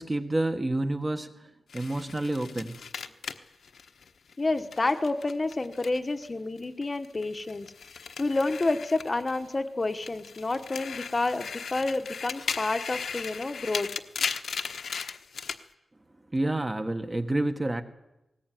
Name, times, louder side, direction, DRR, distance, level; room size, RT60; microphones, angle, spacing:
voice 1, 0.0-2.8 16.3-17.8, right 1 dB, 20° right, 7 dB, 1.4 m, -29 dB
sound 1, 1.7-6.3 6.6-9.5 9.9-15.6, left 6 dB, 65° left, 1.2 m, -37 dB
voice 2, 4.4-7.7 8.2-13.9, left 2 dB, 25° left, 8 dB, 1.2 m, -29 dB
20.0 x 19.0 x 9.2 m, 0.93 s
wide cardioid pair, 175°, 0 cm